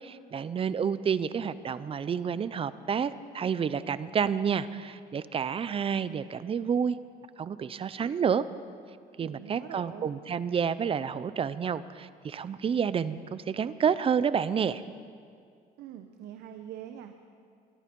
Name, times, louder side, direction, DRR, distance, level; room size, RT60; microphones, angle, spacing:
voice 1, 0.0-7.0 7.4-8.4 9.2-14.8, right 7 dB, 35° right, 15 dB, 0.6 m, -29 dB
voice 2, 9.2-10.1 15.8-17.1, right 10 dB, 80° right, 7 dB, 0.9 m, -44 dB
24.0 x 11.0 x 5.3 m, 2.2 s
cardioid pair, 110°, 17 cm